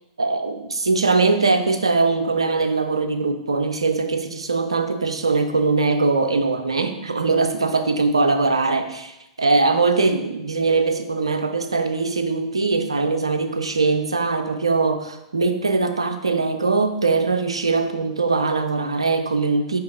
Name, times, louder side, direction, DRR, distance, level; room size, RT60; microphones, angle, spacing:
voice 1, 0.2-19.8, right 3 dB, 80° right, 8 dB, 0.6 m, -21 dB
5.9 x 4.8 x 3.7 m, 0.90 s
figure-of-eight pair, 100°, 3 cm